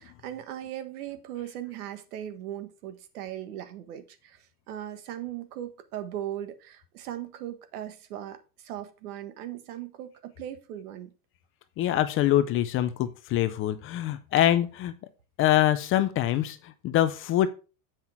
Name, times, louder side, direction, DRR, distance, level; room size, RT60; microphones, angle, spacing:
voice 1, 0.0-11.1 14.3-14.4, right 11 dB, 70° right, 1.5 m, -38 dB
voice 2, 11.8-14.9 15.4-17.5, left 12 dB, 30° left, 0.5 m, -24 dB
7.9 x 5.7 x 4.4 m
supercardioid pair, 140°, 46 cm